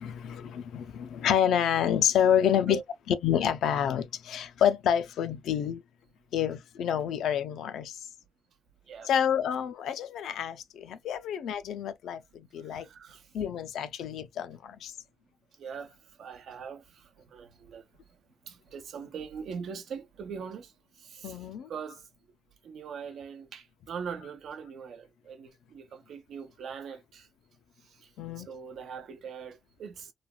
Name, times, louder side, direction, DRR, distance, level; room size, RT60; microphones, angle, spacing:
voice 1, 0.0-5.8 6.3-8.1 9.0-12.9 13.3-14.9 21.2-21.7 28.2-28.5, left 9 dB, 75° left, 0.4 m, -28 dB
voice 2, 12.7-13.3 15.6-17.8 18.5-20.7 21.0-22.0 22.6-27.3 27.9-28.1 28.4-30.1, right 6 dB, 65° right, 0.7 m, -42 dB
3.3 x 2.2 x 2.2 m
cardioid pair, 90°, 0 cm